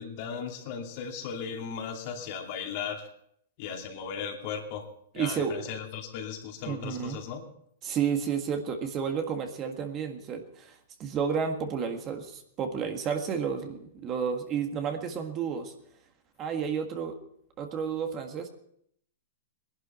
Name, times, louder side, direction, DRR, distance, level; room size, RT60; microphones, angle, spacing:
voice 1, 0.0-3.1 3.6-4.9 5.1-7.5, left 7 dB, 50° left, 2 dB, 2.5 m, -36 dB
voice 2, 5.1-5.6 6.7-7.2 7.8-15.7 16.4-17.2 17.6-18.5, right 7 dB, 30° right, 5 dB, 1.7 m, -31 dB
19.0 x 11.5 x 4.3 m, 0.68 s
hypercardioid pair, 130°, 0 cm